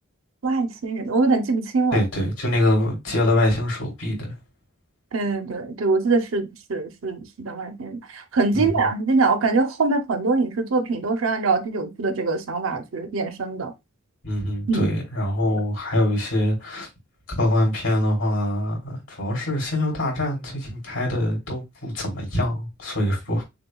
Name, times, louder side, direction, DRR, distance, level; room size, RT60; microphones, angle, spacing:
voice 1, 0.4-2.0 5.1-13.7 14.7-14.9, right 3 dB, 70° right, 0.6 m, -23 dB
voice 2, 1.9-4.3 8.5-8.8 14.2-16.9 17.4-23.4, left 1 dB, 65° left, 2.8 m, -24 dB
6.7 x 2.3 x 2.3 m
head